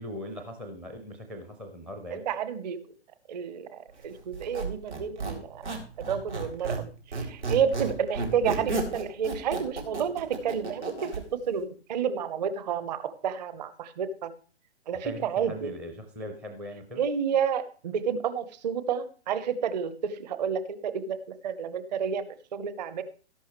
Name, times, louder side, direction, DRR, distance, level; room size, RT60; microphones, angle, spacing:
voice 1, 0.0-2.2 15.0-17.0, left 1 dB, 5° right, 5 dB, 0.4 m, -40 dB
voice 2, 2.1-2.8 3.3-5.7 6.0-11.1 11.5-14.3 14.9-15.7 17.0-23.0, right 7 dB, 40° right, 13 dB, 0.9 m, -30 dB
Squeak, 4.3-6.9 7.1-11.2, right 3 dB, 80° right, 3.9 m, -32 dB
13.5 x 11.5 x 3.1 m, 0.40 s
figure-of-eight pair, 130°, 34 cm